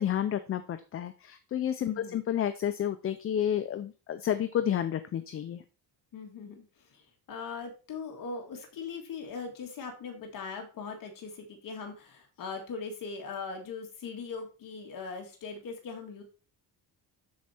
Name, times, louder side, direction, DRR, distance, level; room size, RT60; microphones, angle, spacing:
voice 1, 0.0-5.6, left 10 dB, 35° left, 10 dB, 0.5 m, -30 dB
voice 2, 1.8-2.2 6.1-6.6 6.9-7.0 7.3-16.2, left 5 dB, 50° left, 2 dB, 1.8 m, -40 dB
12.5 x 4.6 x 4.3 m, 0.35 s
cardioid pair, 170°, 42 cm